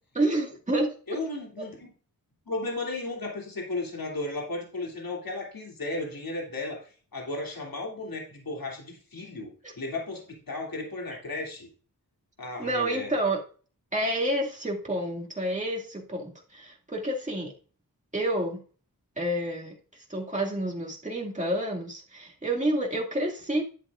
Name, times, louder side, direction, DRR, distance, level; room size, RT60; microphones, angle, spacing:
voice 1, 0.2-1.0 9.6-9.7 12.6-13.4 13.9-17.5 18.1-18.6 19.2-23.6, right 1 dB, 20° right, -2 dB, 2.3 m, -29 dB
voice 2, 1.1-1.9 2.5-6.8 7.1-9.5 9.8-11.7 12.4-13.1, left 2 dB, 70° left, 0 dB, 3.0 m, -34 dB
11.5 x 7.7 x 2.5 m, 0.39 s
wide cardioid pair, 55°, 36 cm